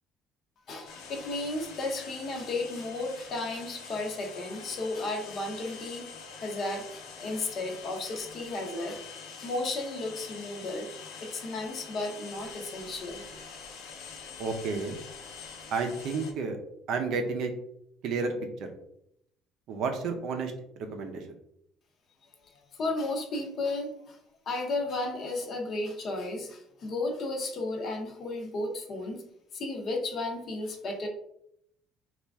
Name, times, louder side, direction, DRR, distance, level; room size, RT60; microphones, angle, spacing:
voice 1, 0.7-9.0 9.4-13.3 22.5-24.2 24.5-29.2 29.5-31.1, left 2 dB, 35° left, 3 dB, 0.6 m, -34 dB
sound 1, 0.8-16.3, left 5 dB, 70° left, 0.8 m, -45 dB
voice 2, 14.4-15.0 15.7-16.6 16.9-17.5 18.0-18.3 18.6-18.7 19.7-21.2, right 4 dB, 50° right, 5 dB, 0.5 m, -31 dB
4.2 x 2.4 x 3.4 m, 0.75 s
cardioid pair, 175°, 0 cm